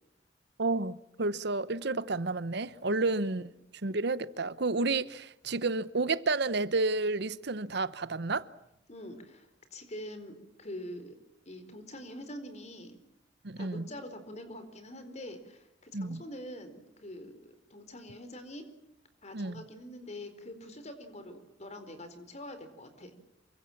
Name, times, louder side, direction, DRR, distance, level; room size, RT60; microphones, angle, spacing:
voice 1, 0.6-3.5 3.8-8.5 13.4-13.8 15.9-16.2 19.3-19.6, right 3 dB, 65° right, 1.0 m, -31 dB
voice 2, 8.9-11.1 11.5-13.0 13.6-17.4 17.7-18.7 19.2-23.1, left 1 dB, 40° left, 4.5 m, -45 dB
27.5 x 24.5 x 7.3 m
head